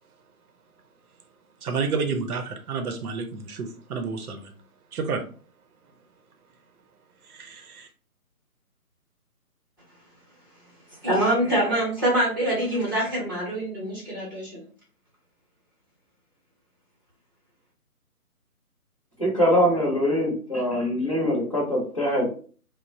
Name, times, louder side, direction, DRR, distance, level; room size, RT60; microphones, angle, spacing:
voice 1, 1.6-4.5 4.9-5.2 7.4-7.9, right 4 dB, 75° right, 5 dB, 0.7 m, -30 dB
voice 2, 11.0-14.6, right 1 dB, 15° right, -6 dB, 0.8 m, -25 dB
voice 3, 19.2-22.3, equal, 25° left, -5 dB, 0.7 m, -23 dB
3.1 x 2.0 x 2.6 m, 0.41 s
figure-of-eight pair, 165°, 45 cm